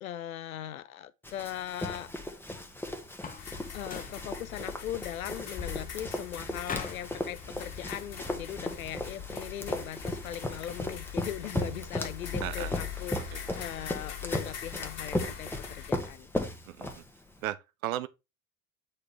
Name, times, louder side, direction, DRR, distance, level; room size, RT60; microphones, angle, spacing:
voice 1, 0.0-2.1 3.7-16.3, left 11 dB, 90° left, 0.6 m, -39 dB
Run, 1.2-17.4, left 1 dB, 5° left, 1.3 m, -37 dB
Open and Slam Opel Corsa Door, 3.1-3.5 3.8-4.2 6.6-7.1, left 5 dB, 20° left, 1.0 m, -39 dB
sound 1, 3.4-15.9, left 8 dB, 40° left, 2.0 m, -42 dB
voice 2, 12.4-12.7 13.3-13.4 16.7-16.9 17.4-18.1, right 14 dB, 80° right, 0.6 m, -35 dB
7.7 x 4.4 x 3.3 m
hypercardioid pair, 60°, 41 cm